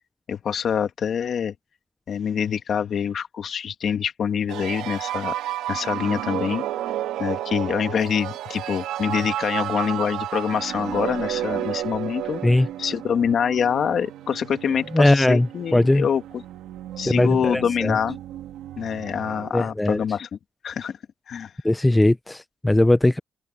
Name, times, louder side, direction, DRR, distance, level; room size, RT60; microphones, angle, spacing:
voice 1, 0.3-1.5 2.1-5.3 5.7-6.6 7.2-12.4 12.8-16.2 17.0-18.2 18.8-20.3 20.6-21.0 21.3-21.5, left 7 dB, 55° left, 2.4 m, -25 dB
sound 1, 4.5-19.5, right 12 dB, 85° right, 2.0 m, -32 dB
voice 2, 14.9-16.1 17.1-18.0 19.5-20.0 21.6-23.2, left 1 dB, 10° left, 0.6 m, -19 dB
cardioid pair, 90°, 0 cm